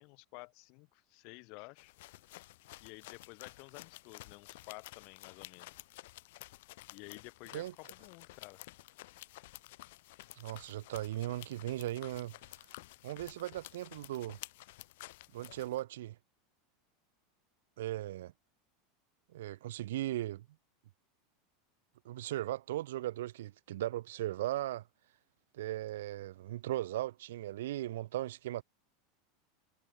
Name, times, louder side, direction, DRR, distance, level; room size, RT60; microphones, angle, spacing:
voice 1, 0.0-1.9 2.8-5.7 6.9-8.6, left 31 dB, 55° left, 4.7 m, -52 dB
sound 1, 1.8-15.8, left 19 dB, 70° left, 2.2 m, -52 dB
voice 2, 10.4-12.3 13.0-14.4 15.3-16.2 17.8-18.3 19.3-20.5 22.0-24.8 25.5-28.6, right 14 dB, 85° right, 0.9 m, -37 dB
supercardioid pair, 140°, 0 cm